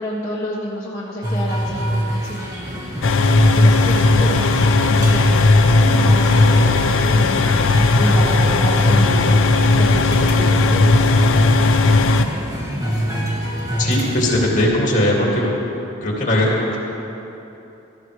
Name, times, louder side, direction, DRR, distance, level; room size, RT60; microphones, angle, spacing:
voice 1, 0.0-3.1 3.5-5.6 5.9-10.8, equal, 15° left, -8 dB, 1.4 m, -30 dB
sound 1, 1.2-14.7, equal, 20° right, 1.7 m, -23 dB
sound 2, 3.0-12.2, left 3 dB, 80° left, 0.6 m, -16 dB
voice 2, 13.8-15.5 16.0-16.8, left 1 dB, 40° left, -3 dB, 2.4 m, -19 dB
17.0 x 14.0 x 3.3 m, 2.9 s
head